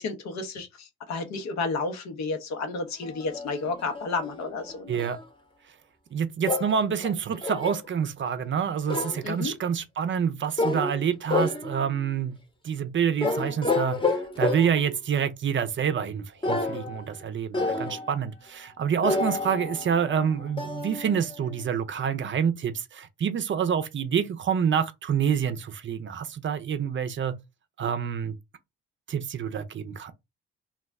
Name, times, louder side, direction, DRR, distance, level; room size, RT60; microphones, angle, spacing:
voice 1, 0.0-5.0 9.2-9.5, left 3 dB, 60° left, 0.8 m, -31 dB
sound 1, 3.0-5.2 6.4-7.9 8.9-9.3 10.6-11.0 11.3-12.0 13.2-14.9 16.4-17.2 17.5-18.2 19.0-21.7, left 3 dB, 15° left, 0.9 m, -30 dB
voice 2, 4.9-5.2 6.1-12.4 12.6-27.4 27.8-28.4 29.1-30.1, right 7 dB, 40° right, 0.5 m, -27 dB
2.3 x 2.0 x 3.5 m
supercardioid pair, 60°, 30 cm